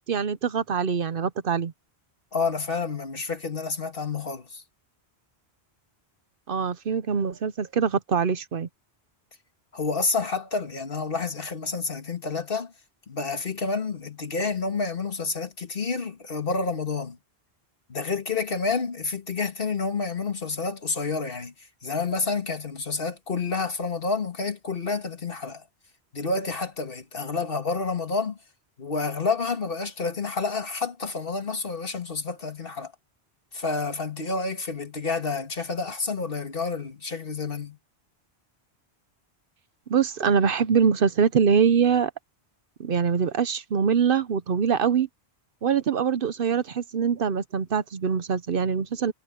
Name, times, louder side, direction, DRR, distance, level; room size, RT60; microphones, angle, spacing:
voice 1, 0.0-1.7 6.5-8.7 39.9-42.1 42.8-45.1 45.6-49.1, right 6 dB, 60° right, 0.9 m, -23 dB
voice 2, 2.3-4.6 9.7-12.7 13.1-17.2 17.9-25.6 26.1-28.4 28.8-32.9 33.5-37.8, left 4 dB, 60° left, 2.1 m, -29 dB
omnidirectional pair, 1.1 m